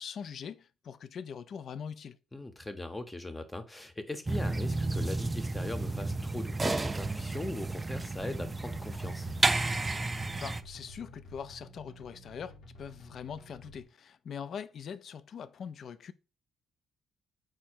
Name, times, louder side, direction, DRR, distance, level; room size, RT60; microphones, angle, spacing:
voice 1, 0.0-2.2 10.4-16.1, left 7 dB, 60° left, 0.3 m, -42 dB
voice 2, 2.3-9.3, left 2 dB, 15° left, 0.7 m, -40 dB
sound 1, 4.3-10.6, right 2 dB, 25° right, 0.3 m, -32 dB
sound 2, 8.4-13.8, left 1 dB, 75° left, 0.9 m, -51 dB
4.7 x 2.1 x 4.3 m
cardioid pair, 90°, 0 cm